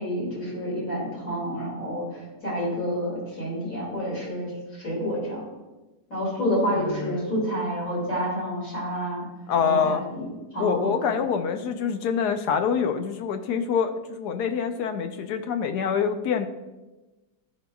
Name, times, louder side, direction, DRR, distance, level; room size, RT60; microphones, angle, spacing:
voice 1, 0.0-2.1 2.4-4.5 4.8-5.4 6.1-9.2 9.6-10.3 10.5-11.2, equal, 55° left, -7 dB, 2.9 m, -29 dB
voice 2, 6.7-7.3 9.5-10.0 10.6-16.5, left 6 dB, 75° left, 7 dB, 1.1 m, -26 dB
12.0 x 4.7 x 2.3 m, 1.1 s
omnidirectional pair, 1.8 m